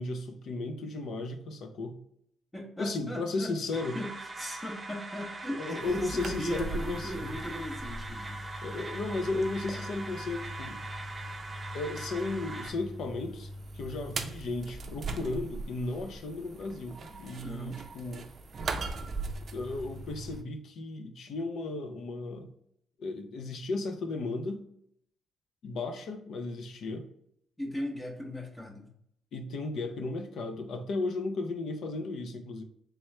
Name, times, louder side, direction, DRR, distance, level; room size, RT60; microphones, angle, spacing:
voice 1, 0.0-2.0 2.8-4.0 5.5-7.3 8.6-10.8 11.7-18.3 19.5-22.5 23.0-24.7 25.6-27.1 29.3-32.6, left 3 dB, 70° left, 6 dB, 0.6 m, -35 dB
voice 2, 2.5-3.5 3.9-8.4 17.4-17.8 27.6-28.9, equal, 15° left, 1 dB, 0.7 m, -38 dB
sound 1, 3.7-12.7, right 2 dB, 20° right, 0.8 m, -42 dB
sound 2, 5.8-20.4, right 2 dB, 50° right, 0.4 m, -40 dB
3.4 x 3.0 x 3.2 m, 0.72 s
cardioid pair, 90°, 0 cm